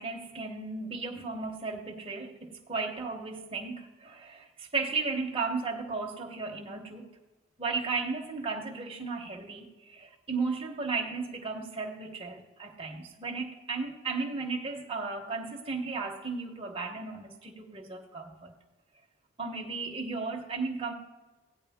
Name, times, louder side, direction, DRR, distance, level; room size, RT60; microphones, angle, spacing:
voice 1, 0.0-7.1 7.6-18.5 19.4-20.9, right 4 dB, 25° right, 1 dB, 0.9 m, -35 dB
16.0 x 9.6 x 3.5 m, 1.1 s
head